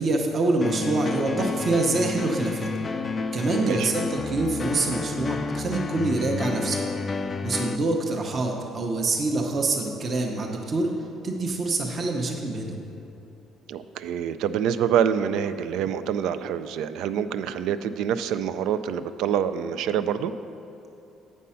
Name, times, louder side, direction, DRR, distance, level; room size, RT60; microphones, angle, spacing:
voice 1, 0.0-2.7 3.3-6.8 7.4-10.9 11.2-12.8, right 2 dB, 35° right, 1 dB, 0.7 m, -26 dB
sound 1, 0.6-7.8, left 4 dB, 25° left, 0.3 m, -30 dB
voice 2, 3.6-3.9 13.7-20.3, right 8 dB, 80° right, 12 dB, 0.3 m, -26 dB
8.4 x 5.4 x 5.6 m, 2.8 s
cardioid pair, 150°, 0 cm